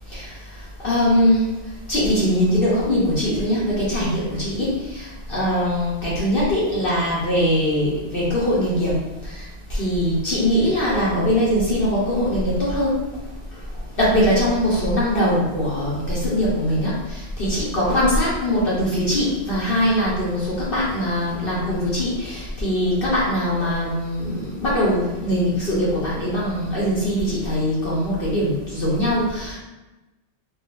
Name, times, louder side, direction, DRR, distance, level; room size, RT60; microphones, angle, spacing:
voice 1, 0.8-1.5 1.9-9.0 9.2-9.3 9.7-12.9 14.0-29.6, equal, 50° left, -7 dB, 1.0 m, -21 dB
3.8 x 2.5 x 2.5 m, 1.0 s
omnidirectional pair, 1.3 m